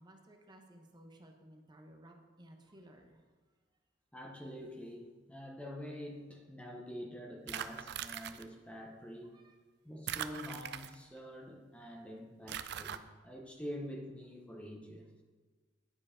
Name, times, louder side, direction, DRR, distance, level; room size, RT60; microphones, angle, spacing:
voice 1, 0.0-3.3 9.3-9.6, right 1 dB, 25° right, 3 dB, 0.8 m, -57 dB
voice 2, 4.1-9.4 9.8-15.1, equal, 5° left, 1 dB, 0.7 m, -46 dB
sound 1, 7.5-8.4 10.1-11.2 12.5-13.0, right 9 dB, 60° right, 0.4 m, -41 dB
9.7 x 4.7 x 4.9 m, 1.4 s
head